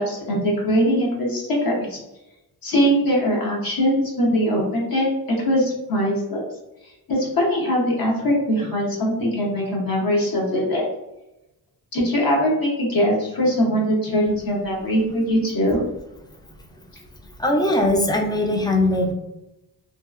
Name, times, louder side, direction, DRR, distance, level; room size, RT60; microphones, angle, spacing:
voice 1, 0.0-2.0 2.6-5.1 5.4-6.4 7.1-10.9 11.9-15.8, equal, 60° left, -3 dB, 0.9 m, -21 dB
voice 2, 17.4-19.1, left 1 dB, 10° left, 2 dB, 0.4 m, -20 dB
2.7 x 2.3 x 2.4 m, 0.93 s
cardioid pair, 80°, 39 cm